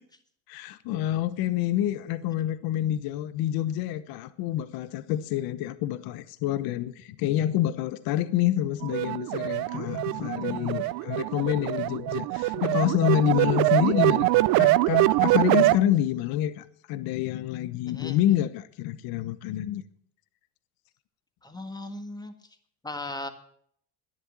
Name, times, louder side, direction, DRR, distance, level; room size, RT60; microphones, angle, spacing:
voice 1, 0.5-19.8, left 12 dB, 60° left, 14 dB, 1.1 m, -27 dB
sound 1, 8.8-15.8, right 18 dB, 60° right, 0.6 m, -24 dB
voice 2, 17.9-18.2 21.4-22.3 22.8-23.3, left 2 dB, 10° left, 7 dB, 1.7 m, -37 dB
12.0 x 10.0 x 7.4 m, 0.66 s
supercardioid pair, 105°, 40 cm